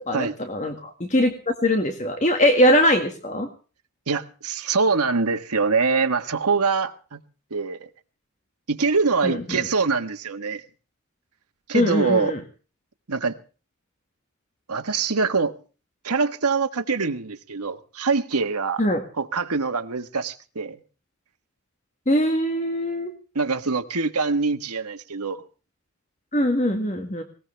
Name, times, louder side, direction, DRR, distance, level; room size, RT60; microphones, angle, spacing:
voice 1, 0.0-3.5 9.2-9.7 11.7-12.4 18.8-19.0 22.1-23.1 26.3-27.2, equal, 30° left, 1.8 m, -22 dB
voice 2, 4.1-7.2 7.5-7.9 8.7-10.6 11.7-12.3 13.1-13.4 14.7-15.6 16.0-18.8 19.2-20.8 23.3-25.4, right 4 dB, 90° right, 1.4 m, -24 dB
20.0 x 18.5 x 3.4 m
head